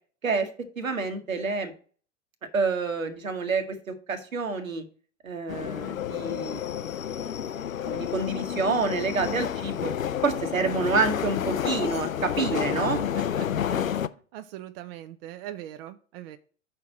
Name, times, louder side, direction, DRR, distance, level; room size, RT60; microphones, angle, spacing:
voice 1, 0.8-1.7 2.5-4.8 5.2-6.9 7.8-9.9 10.2-13.0, right 4 dB, 80° right, 7 dB, 1.4 m, -28 dB
sound 1, 5.5-14.1, left 9 dB, 90° left, 0.5 m, -30 dB
voice 2, 13.1-14.0 14.3-16.4, right 13 dB, 50° right, 10 dB, 0.6 m, -41 dB
5.8 x 4.6 x 6.3 m, 0.42 s
figure-of-eight pair, 95°, 39 cm